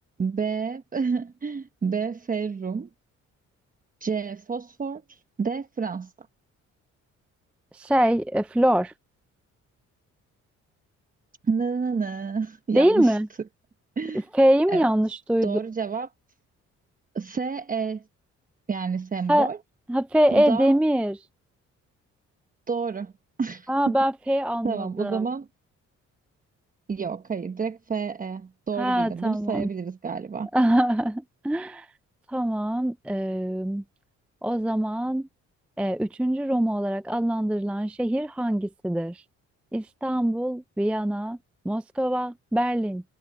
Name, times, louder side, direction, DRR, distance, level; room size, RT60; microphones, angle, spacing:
voice 1, 0.2-2.9 4.0-6.3 11.4-13.2 14.0-14.2 14.7-14.9 15.4-16.1 17.1-18.0 18.7-19.6 20.3-20.7 22.7-23.1 23.4-23.7 24.6-25.5 26.9-30.5, right 5 dB, 30° right, 1.0 m, -29 dB
voice 2, 7.7-8.9 12.7-13.3 14.3-15.6 19.3-19.5 19.9-21.3 23.7-25.3 28.8-29.7 30.5-31.9 32.3-33.8 34.4-35.3 35.8-39.2 39.7-41.4 41.6-43.0, right 1 dB, 5° right, 0.4 m, -23 dB
cardioid pair, 90°, 30 cm